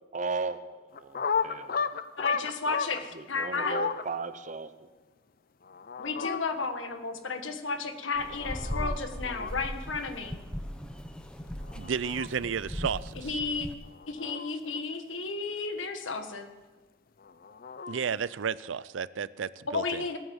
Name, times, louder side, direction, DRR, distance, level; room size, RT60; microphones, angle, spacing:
voice 1, 0.1-1.9 3.1-4.7, right 4 dB, 40° right, 11 dB, 0.8 m, -36 dB
sound 1, 0.9-3.0 3.4-4.0 5.6-6.4 8.1-9.0 9.2-9.5 11.6-12.3 13.8-14.8 17.2-18.0, left 6 dB, 50° left, 0.6 m, -33 dB
voice 2, 2.2-3.8 6.0-10.4 13.2-13.7 14.1-16.5 19.7-20.2, left 4 dB, 85° left, 7 dB, 1.5 m, -33 dB
sound 2, 8.1-13.7, equal, 5° left, 0.9 m, -38 dB
voice 3, 11.7-13.0 17.9-20.0, right 6 dB, 80° right, 18 dB, 0.5 m, -32 dB
18.0 x 9.2 x 7.2 m, 1.2 s
head